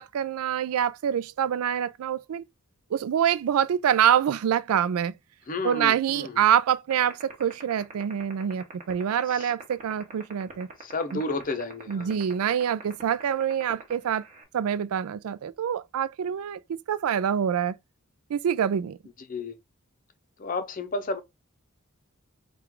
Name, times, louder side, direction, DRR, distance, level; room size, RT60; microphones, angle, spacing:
voice 1, 0.0-2.4 2.9-5.1 5.6-10.7 11.1-11.2 11.9-14.2 14.5-16.6 16.9-17.8 18.3-19.0, right 9 dB, 85° right, 0.3 m, -25 dB
voice 2, 5.5-6.4 9.3-9.5 10.8-12.1 19.3-19.6 20.4-21.2, left 3 dB, 40° left, 0.6 m, -32 dB
sound 1, 6.9-14.4, right 4 dB, 35° right, 1.1 m, -41 dB
3.7 x 2.4 x 4.4 m
head